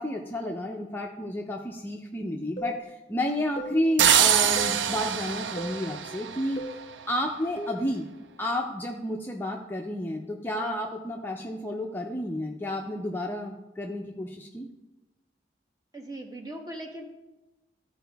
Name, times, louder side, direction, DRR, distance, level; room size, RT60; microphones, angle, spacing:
voice 1, 0.0-6.6 7.1-8.1 8.4-14.7, left 1 dB, 10° left, 0 dB, 0.5 m, -31 dB
sound 1, 2.6-2.8 3.6-3.8 4.6-4.8 5.6-5.8 6.6-6.8 7.6-7.9, right 1 dB, 30° left, 0.8 m, -36 dB
sound 2, 4.0-6.8, right 9 dB, 80° right, 0.4 m, -24 dB
voice 2, 15.9-17.0, right 1 dB, 20° right, 2 dB, 1.0 m, -40 dB
13.5 x 4.7 x 3.4 m, 1.0 s
head